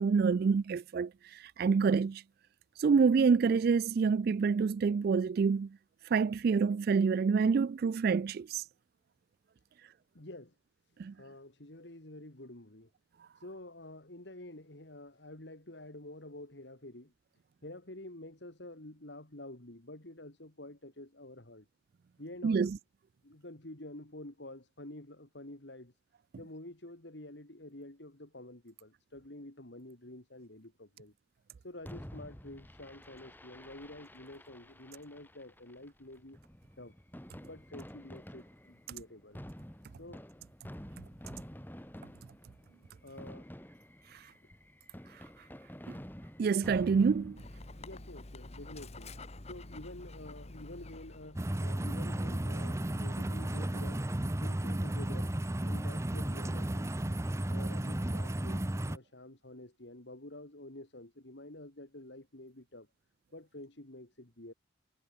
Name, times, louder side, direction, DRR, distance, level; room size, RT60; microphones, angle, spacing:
voice 1, 0.0-2.2 2.8-5.8 6.1-8.6 11.0-11.1 22.4-22.8 46.4-47.4, right 5 dB, 50° right, 0.3 m, -27 dB
voice 2, 10.1-10.5 11.1-12.9 13.4-17.1 17.6-21.7 22.2-22.7 23.2-25.9 26.4-31.1 31.6-36.4 36.8-36.9 37.4-39.4 39.9-40.2 43.0-43.5 47.8-49.2 49.4-54.1 54.4-55.3 55.6-56.9 57.5-62.9 63.3-64.5, left 1 dB, 60° left, 2.7 m, -49 dB
Fireworks, 31.8-48.0, equal, 10° left, 2.8 m, -50 dB
Dog, 47.4-51.5, left 2 dB, 35° left, 1.4 m, -48 dB
sound 1, 51.4-59.0, right 1 dB, 15° right, 0.7 m, -33 dB
head